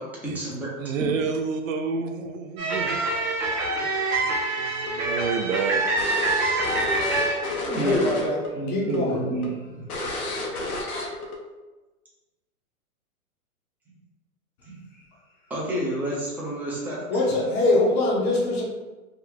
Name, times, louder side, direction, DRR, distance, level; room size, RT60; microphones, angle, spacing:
voice 1, 0.0-0.7 1.0-1.2 7.4-8.3 8.5-9.8 13.9-14.0 14.7-14.8 15.5-17.5, right 1 dB, 5° right, -6 dB, 0.6 m, -30 dB
voice 2, 0.8-5.8, right 5 dB, 65° right, 5 dB, 0.5 m, -30 dB
sound 1, 2.6-7.6, right 2 dB, 30° right, 0.8 m, -26 dB
sound 2, 4.9-8.5 8.7-9.0 9.4-9.5 9.9-11.4, left 2 dB, 80° left, 0.9 m, -31 dB
voice 3, 7.8-9.2 17.1-18.6, left 2 dB, 35° left, -3 dB, 0.7 m, -23 dB
3.0 x 2.1 x 3.8 m, 1.2 s
hypercardioid pair, 130°, 43 cm